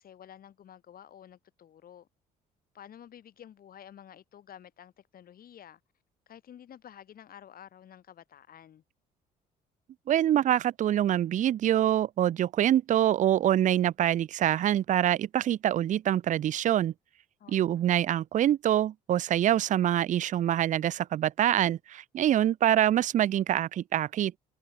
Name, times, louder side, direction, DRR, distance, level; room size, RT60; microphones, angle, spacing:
voice 1, 0.0-2.1 2.7-5.8 6.3-8.8 17.4-17.8, left 10 dB, 60° left, 7.6 m, -51 dB
voice 2, 10.1-16.9 17.5-24.3, right 11 dB, 45° right, 0.4 m, -25 dB
cardioid pair, 95°, 17 cm